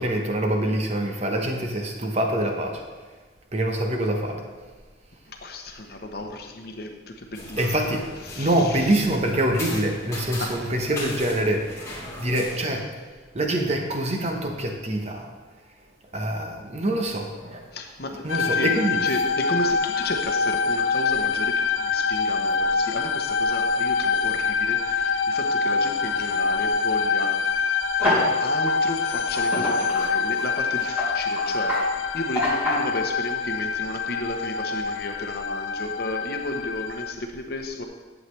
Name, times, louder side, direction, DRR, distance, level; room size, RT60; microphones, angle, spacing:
voice 1, 0.0-2.8 3.5-4.4 7.6-8.1 8.4-12.9 13.3-15.3 16.1-17.6 18.2-19.2, right 1 dB, 35° right, 3 dB, 1.0 m, -25 dB
voice 2, 5.3-9.0 10.4-10.7 12.5-12.7 17.7-18.7 19.0-27.4 28.0-37.9, left 1 dB, 55° left, 4 dB, 1.0 m, -33 dB
sound 1, 7.3-12.6, left 2 dB, 15° left, 2.4 m, -38 dB
sound 2, 18.3-37.1, left 5 dB, 80° left, 0.5 m, -25 dB
sound 3, 28.0-28.3 28.7-28.8 29.3-32.9, left 1 dB, 10° right, 2.9 m, -26 dB
11.0 x 7.4 x 3.3 m, 1.4 s
head